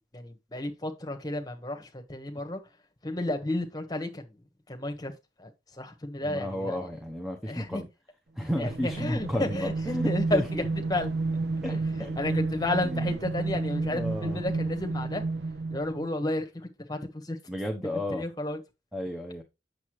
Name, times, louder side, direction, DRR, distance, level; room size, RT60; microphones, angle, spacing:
voice 1, 0.1-2.6 3.0-4.3 4.7-5.1 5.4-5.5 5.8-6.8 7.5-7.8 8.6-10.6 10.9-11.1 11.7-11.8 12.2-15.2 15.7-16.5 16.9-17.4 17.8-18.6, left 1 dB, 20° left, 1.3 m, -32 dB
voice 2, 6.2-7.9 8.4-10.6 11.6-12.1 12.8-13.2 13.8-14.4 17.5-18.2 18.9-19.4, left 1 dB, ahead, 0.9 m, -33 dB
sound 1, 8.4-16.1, right 3 dB, 65° right, 0.5 m, -31 dB
8.3 x 6.8 x 3.1 m
head